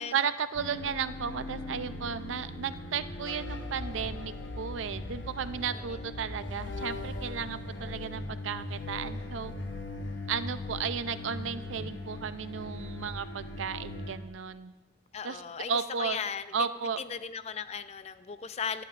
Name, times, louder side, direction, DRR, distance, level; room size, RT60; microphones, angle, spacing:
voice 1, 0.1-9.5 10.3-14.7 15.2-15.4 15.7-16.2 16.5-17.0, right 6 dB, 90° right, 13 dB, 0.5 m, -34 dB
sound 1, 0.5-14.1, left 2 dB, 65° left, 1.0 m, -39 dB
voice 2, 5.7-6.1 15.1-16.5 17.0-18.8, left 6 dB, 35° left, 12 dB, 0.4 m, -37 dB
18.5 x 11.5 x 2.5 m, 1.2 s
head